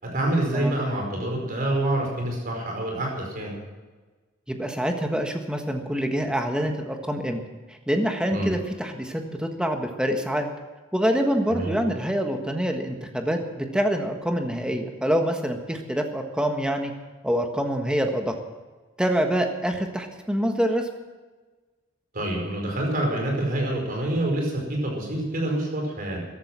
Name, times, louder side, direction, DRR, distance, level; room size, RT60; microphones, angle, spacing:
voice 1, 0.0-3.5 8.3-8.5 11.5-11.8 22.1-26.2, right 1 dB, 45° right, 0 dB, 4.9 m, -27 dB
voice 2, 4.5-7.4 7.9-10.5 10.9-16.9 17.2-18.3 19.0-20.9, equal, 5° right, 4 dB, 1.5 m, -26 dB
14.5 x 12.5 x 6.2 m, 1.3 s
head